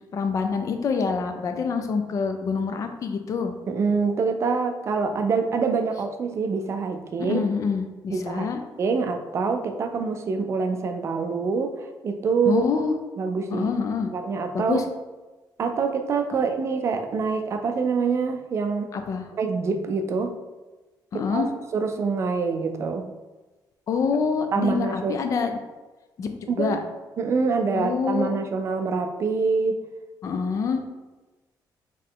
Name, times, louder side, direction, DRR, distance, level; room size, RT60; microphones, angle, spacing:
voice 1, 0.1-3.5 7.2-8.6 12.5-12.9 13.5-14.1 14.5-14.8 18.9-19.3 21.1-21.5 23.9-25.5 26.2-26.8 27.7-28.3 30.2-30.8, left 5 dB, 45° left, 6 dB, 0.4 m, -26 dB
voice 2, 3.7-7.4 8.1-8.5 8.8-12.7 13.2-13.7 14.0-14.8 15.6-18.9 19.4-20.3 21.1-21.4 21.7-23.1 24.5-25.2 26.5-26.8 27.2-29.8, right 4 dB, 35° right, 6 dB, 0.4 m, -25 dB
3.9 x 3.1 x 3.8 m, 1.2 s
cardioid pair, 165°, 8 cm